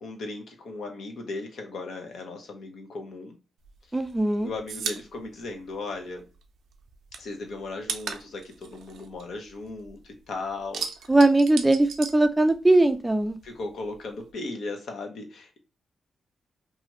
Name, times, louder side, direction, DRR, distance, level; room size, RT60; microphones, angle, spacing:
voice 1, 0.0-3.4 3.9-4.0 4.4-6.2 7.2-11.1 13.4-15.6, left 3 dB, 75° left, 0.8 m, -37 dB
sound 1, 3.6-6.4 6.7-10.0 10.3-12.9 13.2-14.3, right 6 dB, 90° right, 0.4 m, -37 dB
voice 2, 3.9-4.5 11.1-13.4, right 2 dB, 10° right, 0.3 m, -20 dB
2.8 x 2.4 x 2.9 m
wide cardioid pair, 145°, 0 cm